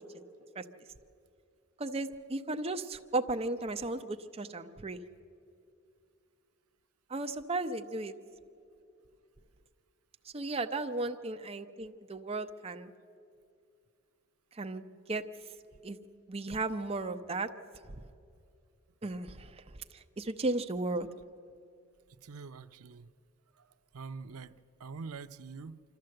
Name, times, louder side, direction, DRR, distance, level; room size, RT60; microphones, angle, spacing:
voice 1, 1.8-5.0 7.1-8.1 10.3-12.9 14.5-14.8 15.1-15.2 15.8-16.0 16.3-17.5 19.0-19.5 19.9-21.1, right 2 dB, 30° right, 6 dB, 0.7 m, -35 dB
voice 2, 22.2-23.1 23.5-25.8, right 4 dB, 80° right, 12 dB, 0.6 m, -45 dB
25.5 x 13.0 x 7.7 m, 2.5 s
head